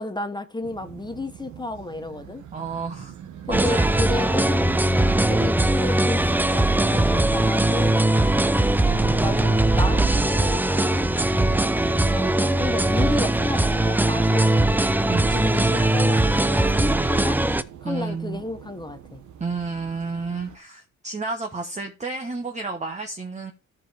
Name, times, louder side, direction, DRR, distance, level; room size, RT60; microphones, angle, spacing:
voice 1, 0.0-2.4 3.5-4.6 5.3-8.0 8.8-10.9 12.1-14.9 15.3-17.4 17.8-19.2, left 2 dB, 15° left, 0.9 m, -31 dB
sound 1, 0.6-20.6, right 9 dB, 70° right, 1.3 m, -43 dB
voice 2, 2.5-3.1 3.5-3.9 5.0-5.2 15.1-15.3 17.8-18.4 19.4-23.5, right 4 dB, 25° right, 1.1 m, -31 dB
sound 2, 3.5-17.6, right 1 dB, 5° right, 0.5 m, -20 dB
14.0 x 5.4 x 3.4 m
cardioid pair, 90°, 30 cm